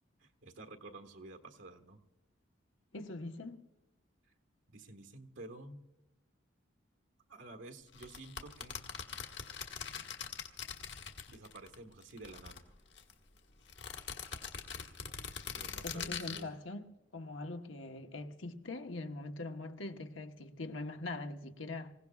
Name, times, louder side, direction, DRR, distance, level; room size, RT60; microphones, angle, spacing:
voice 1, 0.2-2.0 4.7-5.8 7.3-8.9 11.3-12.6 15.5-16.5, right 2 dB, 80° right, 1.6 m, -51 dB
voice 2, 2.9-3.7 15.8-16.8 17.1-21.9, left 2 dB, 80° left, 1.2 m, -42 dB
sound 1, 7.9-11.7 12.0-13.1 13.7-16.4, left 7 dB, 65° left, 1.5 m, -43 dB
26.0 x 16.5 x 2.4 m
head